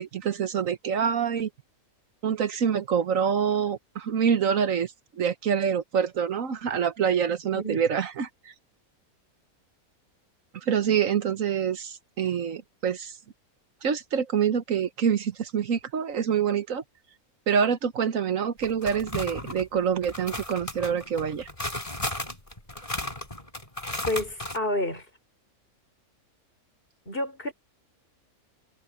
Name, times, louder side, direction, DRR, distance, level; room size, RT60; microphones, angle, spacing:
voice 1, 0.0-1.5 2.2-4.9 5.2-8.5 10.6-13.1 13.8-16.8 17.5-21.5, right 7 dB, 65° right, 1.4 m, -26 dB
sound 1, 18.6-19.7 20.0-24.6, left 1 dB, 25° left, 4.5 m, -34 dB
voice 2, 24.1-25.1 27.1-27.5, left 1 dB, 40° left, 5.6 m, -29 dB
omnidirectional pair, 1.5 m